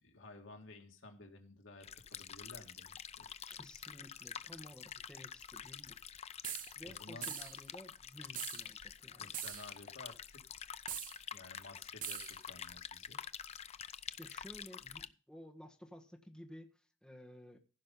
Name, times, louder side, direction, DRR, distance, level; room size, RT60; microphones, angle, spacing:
voice 1, 0.0-3.4 6.5-7.3 9.2-10.7 11.3-13.2, left 2 dB, 70° left, 3 dB, 2.0 m, -55 dB
sound 1, 1.8-15.1, left 8 dB, 30° left, 0.4 m, -48 dB
voice 2, 3.5-6.0 6.8-9.4 14.2-17.6, equal, 5° left, 1 dB, 1.2 m, -54 dB
sound 2, 6.4-6.7 7.2-7.6 8.4-8.6 9.3-9.7 10.9-11.2 12.0-12.4, right 10 dB, 45° right, 0.7 m, -42 dB
15.5 x 5.4 x 5.4 m, 0.36 s
head